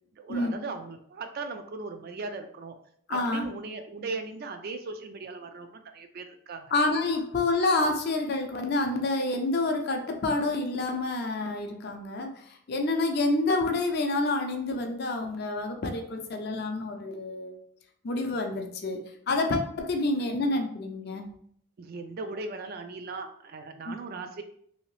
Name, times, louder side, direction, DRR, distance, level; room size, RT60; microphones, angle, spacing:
voice 1, 0.1-2.7 3.1-6.7 21.8-24.4, right 3 dB, 45° right, 7 dB, 0.3 m, -38 dB
voice 2, 3.1-3.5 6.7-17.6 18.0-19.0 19.3-21.2 23.9-24.0, left 2 dB, 45° left, 4 dB, 0.5 m, -28 dB
2.9 x 2.8 x 3.1 m, 0.64 s
head